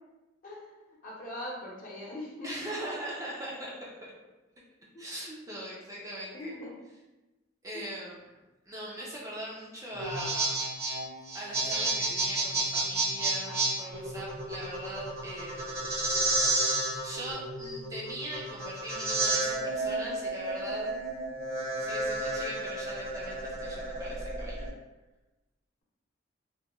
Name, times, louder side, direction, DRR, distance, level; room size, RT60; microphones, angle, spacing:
voice 1, 0.4-0.7 1.0-2.5 4.9-5.0 6.3-6.7 7.7-7.9, left 1 dB, 45° left, -5 dB, 0.7 m, -41 dB
voice 2, 2.4-3.9 5.0-6.6 7.6-8.2 8.7-10.6 11.3-16.0 16.5-16.7 17.0-20.9 21.8-24.7, right 1 dB, 15° right, -5 dB, 0.4 m, -40 dB
sound 1, 9.9-24.7, right 2 dB, 55° right, 0.7 m, -31 dB
2.8 x 2.2 x 2.2 m, 1.1 s
head